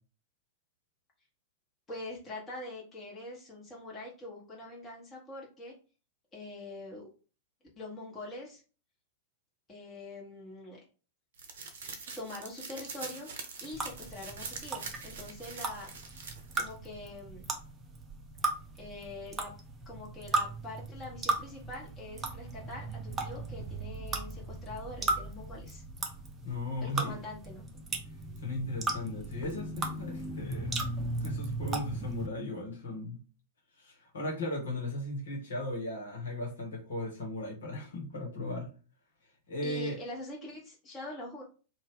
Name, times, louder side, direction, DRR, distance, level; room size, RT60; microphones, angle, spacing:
voice 1, 1.9-5.7 6.3-7.0 7.8-8.6 9.7-10.8 12.2-13.3 13.6-15.9 16.6-17.5 18.8-19.5 19.8-25.8 26.8-27.6 39.6-41.4, left 2 dB, 20° left, -3 dB, 1.3 m, -44 dB
sound 1, 11.4-16.7, right 4 dB, 60° right, 0.7 m, -44 dB
sound 2, 13.7-32.3, right 2 dB, 20° right, 0.6 m, -37 dB
voice 2, 26.4-27.1 28.4-30.8 31.2-33.2 33.8-38.7 39.5-40.0, left 1 dB, 70° left, -1 dB, 1.2 m, -37 dB
2.7 x 2.4 x 3.5 m, 0.35 s
figure-of-eight pair, 95°, 0 cm